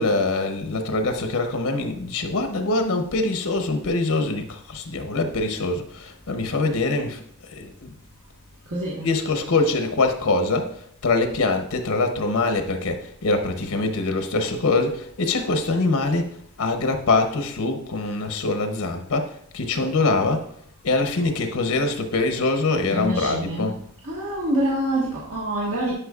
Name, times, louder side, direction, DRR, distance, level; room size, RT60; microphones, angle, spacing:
voice 1, 0.0-7.2 7.5-7.9 9.0-10.7 11.0-20.4 20.8-23.7, left 3 dB, 80° left, 6 dB, 0.8 m, -24 dB
voice 2, 8.7-9.1 22.9-23.8 24.0-25.9, right 1 dB, 65° right, -6 dB, 1.4 m, -26 dB
10.0 x 4.9 x 2.4 m, 0.65 s
head